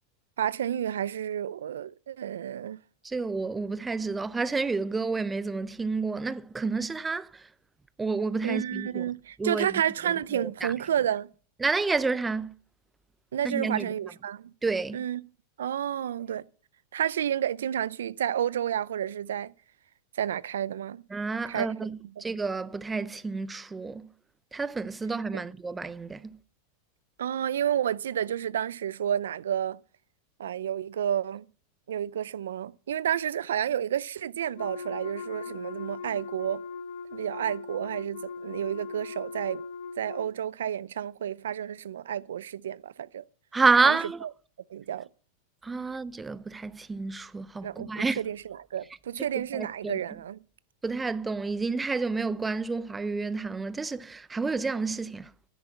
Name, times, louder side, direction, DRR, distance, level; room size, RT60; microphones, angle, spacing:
voice 1, 0.4-2.8 8.4-11.3 13.3-14.5 14.9-15.2 15.6-16.4 16.9-19.5 20.2-21.0 21.5-21.7 22.0-22.2 25.3-25.4 27.2-29.8 30.4-31.4 31.9-36.6 37.1-39.6 40.0-43.2 43.8-44.3 44.7-45.1 47.6-50.4, right 10 dB, 85° right, 0.5 m, -30 dB
voice 2, 3.0-7.3 8.0-9.1 9.4-9.7 10.3-10.7 11.6-12.5 13.4-13.8 14.6-15.0 21.1-24.1 24.5-26.3 43.5-44.2 45.6-48.2 49.5-50.0 50.8-55.3, right 4 dB, 15° right, 0.5 m, -29 dB
Wind instrument woodwind instrument, 34.5-40.3, left 5 dB, 70° left, 2.3 m, -39 dB
10.5 x 9.7 x 6.9 m
hypercardioid pair, 115°, 0 cm